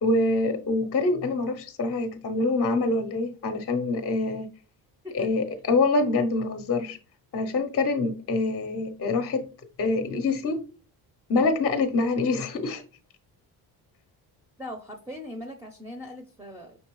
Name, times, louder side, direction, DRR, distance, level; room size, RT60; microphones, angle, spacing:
voice 1, 0.0-4.5 5.1-7.0 7.3-9.5 9.8-10.6 11.3-12.8, left 3 dB, 35° left, 0.6 m, -25 dB
voice 2, 14.6-16.8, left 1 dB, 5° right, 0.5 m, -39 dB
5.5 x 3.1 x 3.0 m
cardioid pair, 110°, 39 cm